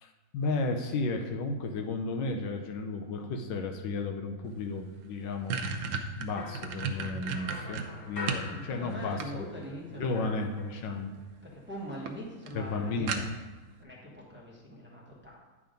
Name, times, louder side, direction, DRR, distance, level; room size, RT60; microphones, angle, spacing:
voice 1, 0.0-9.5 10.0-11.2 12.5-13.3, left 3 dB, 75° left, 4 dB, 1.3 m, -34 dB
sound 1, 4.6-4.7 5.0-8.5 8.9-9.8 10.9-11.3 11.6-11.7 12.1-12.2 12.5-12.6 13.1-13.6, right 6 dB, 80° right, 1.4 m, -34 dB
sound 2, 6.4-9.4 9.7-11.1, left 3 dB, 45° left, 0.9 m, -43 dB
voice 2, 8.5-10.2 11.4-13.2 13.8-15.4, equal, 5° right, -4 dB, 1.1 m, -42 dB
9.8 x 3.7 x 5.1 m, 1.2 s
omnidirectional pair, 2.1 m